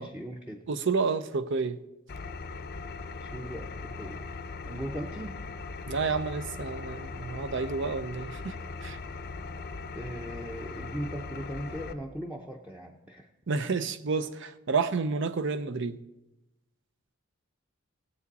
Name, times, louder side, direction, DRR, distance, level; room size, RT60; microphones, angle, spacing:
voice 1, 0.0-0.6 3.2-4.3 4.6-5.4 9.9-13.3, equal, 10° right, 1 dB, 0.7 m, -39 dB
voice 2, 0.7-1.8 5.9-8.6 8.8-9.0 13.5-16.0, right 4 dB, 65° right, 12 dB, 0.6 m, -30 dB
Engine, 2.1-11.9, left 3 dB, 50° left, 0.6 m, -39 dB
18.0 x 8.2 x 4.1 m, 0.98 s
head